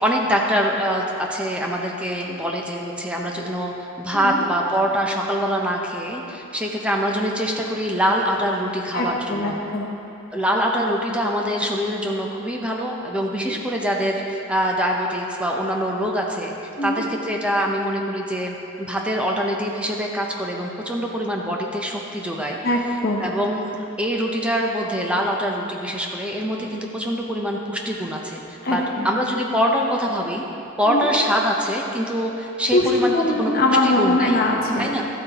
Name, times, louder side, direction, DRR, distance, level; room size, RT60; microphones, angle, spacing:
voice 1, 0.0-9.6 10.3-16.6 16.8-22.6 23.2-28.4 28.7-30.4 30.8-33.5 33.8-34.4 34.8-35.0, equal, 5° right, -1 dB, 0.7 m, -24 dB
voice 2, 8.9-9.9 13.4-13.6 16.8-17.0 22.6-23.3 28.6-29.1 30.8-31.1 32.7-34.9, left 1 dB, 50° left, 0 dB, 1.0 m, -22 dB
13.0 x 8.4 x 3.0 m, 2.8 s
head